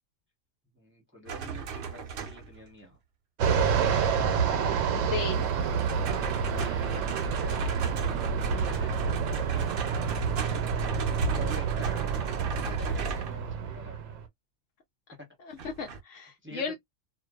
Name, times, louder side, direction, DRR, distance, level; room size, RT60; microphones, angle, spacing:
voice 1, 0.7-3.0 6.3-7.6 8.5-14.2 15.2-15.3 16.4-16.7, equal, 10° right, 0.7 m, -47 dB
sound 1, 1.3-2.6 5.3-13.4 15.6-16.0, right 7 dB, 60° right, 0.6 m, -37 dB
Fixed-wing aircraft airplane, 3.4-14.2, right 6 dB, 75° right, 1.0 m, -28 dB
voice 2, 4.9-5.4 15.4-16.7, left 5 dB, 70° left, 0.9 m, -35 dB
2.5 x 2.2 x 2.2 m
omnidirectional pair, 1.4 m